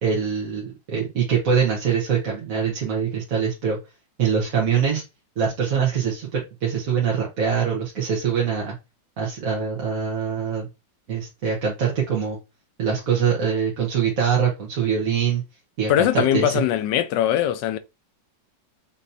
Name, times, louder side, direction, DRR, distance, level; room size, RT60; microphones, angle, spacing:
voice 1, 0.0-3.8 4.2-5.0 5.4-8.8 9.2-10.7 11.1-12.4 12.8-15.4 15.8-16.5, right 7 dB, 55° right, 1.4 m, -23 dB
voice 2, 15.9-17.8, left 11 dB, 80° left, 1.2 m, -21 dB
5.5 x 3.1 x 2.6 m
omnidirectional pair, 2.0 m